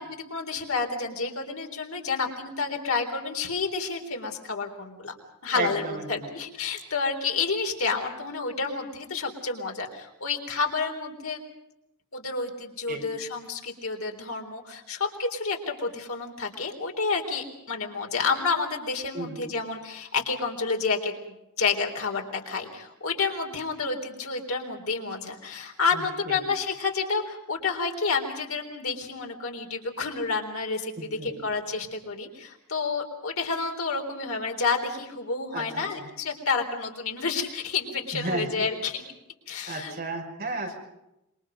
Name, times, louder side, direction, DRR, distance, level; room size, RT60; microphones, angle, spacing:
voice 1, 0.0-5.1 5.4-11.4 12.1-39.0 39.5-39.9, left 4 dB, 65° left, 3 dB, 3.9 m, -30 dB
voice 2, 5.5-6.3 12.9-13.1 19.1-19.4 25.9-26.4 31.0-31.4 35.5-36.1 38.1-38.7 39.7-40.8, right 2 dB, 45° right, 1 dB, 5.7 m, -34 dB
27.0 x 23.5 x 5.3 m, 0.88 s
head